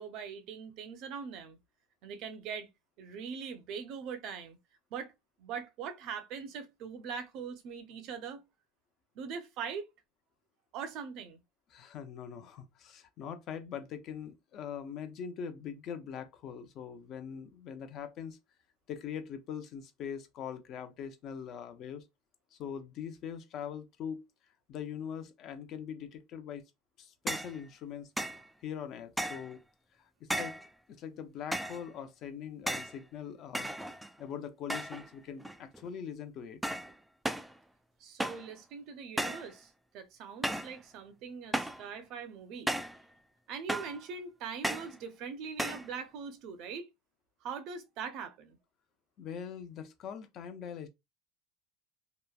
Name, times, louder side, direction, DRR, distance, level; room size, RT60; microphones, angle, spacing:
voice 1, 0.0-1.6 2.0-2.7 3.0-4.6 4.9-5.1 5.4-8.4 9.1-9.9 10.7-11.4 38.0-42.7 43.5-46.9 47.4-48.6, right 6 dB, 60° right, 0.6 m, -42 dB
voice 2, 11.7-18.4 18.9-22.1 22.5-24.3 24.7-26.6 27.0-28.1 28.6-29.6 30.0-30.6 30.9-33.7 34.2-36.6 49.2-50.9, left 8 dB, 50° left, 0.6 m, -42 dB
sound 1, 27.3-27.6 28.2-28.4 29.2-29.5 30.3-30.7 31.5-31.8 32.7-33.0 33.5-34.2 34.7-35.1 35.4-35.9 36.6-36.9 37.2-37.5 38.2-38.5 39.2-39.5 40.4-40.8 41.5-41.8 42.7-43.0 43.7-44.0 44.6-44.9 45.6-45.9, right 1 dB, 5° right, 0.3 m, -35 dB
2.9 x 2.2 x 2.4 m
supercardioid pair, 125°, 0 cm